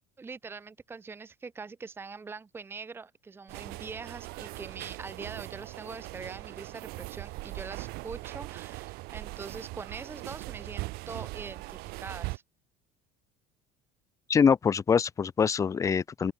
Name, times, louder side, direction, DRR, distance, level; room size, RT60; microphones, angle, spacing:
voice 1, 0.2-12.4, right 4 dB, 15° right, 1.3 m, -43 dB
sound 1, 3.5-12.4, right 23 dB, 65° right, 3.8 m, -40 dB
voice 2, 14.3-16.3, left 6 dB, 20° left, 0.9 m, -24 dB
open air
cardioid pair, 170°, 17 cm